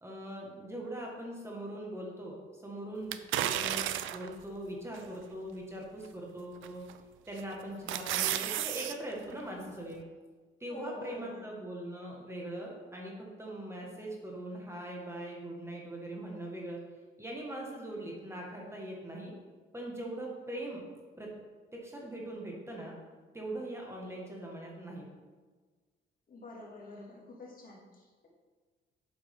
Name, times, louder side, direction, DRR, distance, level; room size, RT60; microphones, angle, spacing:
voice 1, 0.0-6.8 7.3-10.0 10.6-16.8 17.2-19.3 19.7-20.8 21.2-21.3 21.8-22.9 23.3-25.0, right 1 dB, 15° right, -2 dB, 1.8 m, -41 dB
sound 1, 3.1-4.3 4.9-5.0 6.6-7.0 7.4-8.9 9.3-9.4, right 12 dB, 85° right, 0.5 m, -32 dB
voice 2, 10.7-11.5 26.3-28.3, left 3 dB, 45° left, -3 dB, 2.4 m, -47 dB
8.3 x 7.0 x 3.7 m, 1.4 s
cardioid pair, 90°, 20 cm